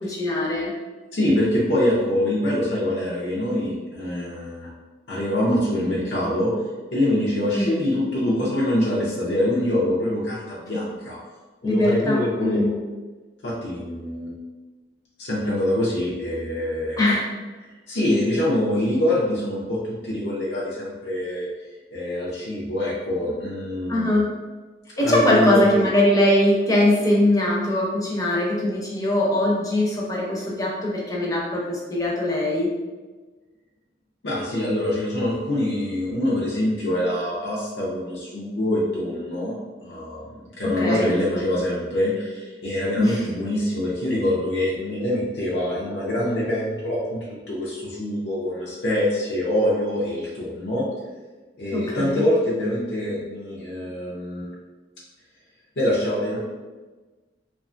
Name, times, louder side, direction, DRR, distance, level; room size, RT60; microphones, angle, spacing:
voice 1, 0.0-0.7 7.5-7.8 11.6-12.7 17.0-17.3 23.9-24.3 25.0-32.7 40.8-41.1 43.0-43.2 51.7-52.2, left 1 dB, 20° left, -3 dB, 0.5 m, -21 dB
voice 2, 1.1-4.7 5.1-6.5 6.9-11.2 11.6-12.7 13.4-14.3 15.2-17.0 17.9-21.5 21.9-24.2 25.0-25.7 34.2-39.5 39.8-50.8 51.6-54.5 55.8-56.4, left 1 dB, 75° left, -6 dB, 0.5 m, -24 dB
2.7 x 2.2 x 2.4 m, 1.3 s
head